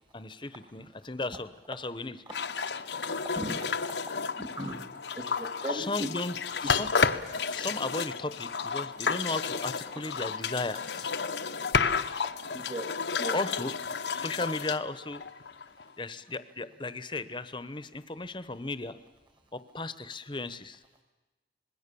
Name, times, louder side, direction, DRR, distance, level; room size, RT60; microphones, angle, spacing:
voice 1, 0.1-2.2 5.7-6.3 6.6-6.9 7.5-11.1 13.3-13.7 14.1-15.2 16.0-19.0 19.5-20.8, left 2 dB, 25° left, 13 dB, 1.0 m, -35 dB
sound 1, 2.3-15.8, left 5 dB, 80° left, 1.0 m, -32 dB
voice 2, 3.2-3.6 4.1-4.8 5.2-6.1 6.6-6.7 12.5-12.8 13.2-13.4, equal, 30° right, 4 dB, 2.0 m, -37 dB
26.5 x 20.5 x 7.0 m, 1.1 s
head